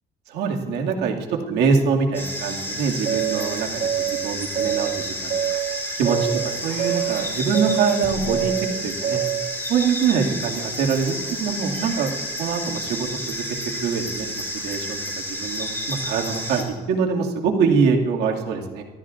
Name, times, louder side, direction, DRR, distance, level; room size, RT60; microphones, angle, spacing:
voice 1, 0.3-1.2 1.5-5.6 6.0-6.2 6.6-8.5 8.8-9.2 9.7-13.4 13.8-14.3 14.6-15.0 15.3-18.8, right 5 dB, 85° right, 0 dB, 2.2 m, -24 dB
sound 1, 2.1-16.6, equal, 15° left, 4.3 m, -31 dB
sound 2, 3.0-9.6, right 11 dB, 60° right, 2.1 m, -26 dB
27.0 x 13.0 x 2.5 m, 1.4 s
cardioid pair, 110°, 17 cm